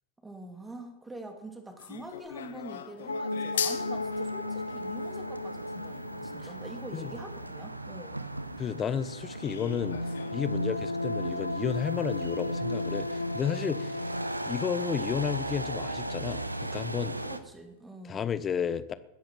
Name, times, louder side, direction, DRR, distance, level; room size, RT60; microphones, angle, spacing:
voice 1, 0.2-8.2 17.2-18.2, right 1 dB, 10° right, 2.7 m, -45 dB
sound 1, 1.8-7.6 8.1-8.2 8.6-8.7 9.4-10.6 10.8-10.9 11.2-11.3 11.9-12.0 12.2-12.4, left 8 dB, 65° left, 1.3 m, -40 dB
sound 2, 3.1-7.4 9.6-15.9 16.3-16.4, left 2 dB, 80° left, 0.7 m, -35 dB
sound 3, 3.6-17.4, right 2 dB, 85° right, 1.0 m, -38 dB
voice 2, 8.6-14.2 14.5-17.2 18.0-18.9, left 8 dB, 25° left, 1.0 m, -32 dB
21.0 x 10.5 x 6.0 m
figure-of-eight pair, 90°, 0 cm